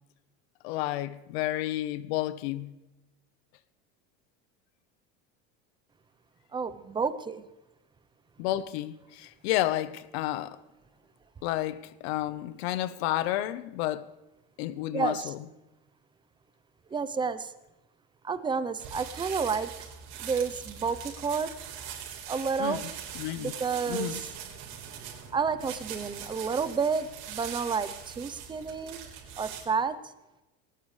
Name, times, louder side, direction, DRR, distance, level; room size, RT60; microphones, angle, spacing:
voice 1, 0.6-2.7 8.4-10.6 11.4-14.1 14.6-15.4 22.6-22.9 23.1-23.5 23.9-24.2, left 14 dB, 80° left, 1.2 m, -31 dB
voice 2, 6.5-7.4 14.9-15.3 16.9-17.5 18.2-19.9 20.2-21.5 22.3-22.8 23.4-24.1 25.3-29.0 29.4-29.9, right 5 dB, 15° right, 0.7 m, -30 dB
sound 1, 18.8-29.6, right 8 dB, 60° right, 4.3 m, -42 dB
20.0 x 19.0 x 3.3 m
cardioid pair, 150°, 31 cm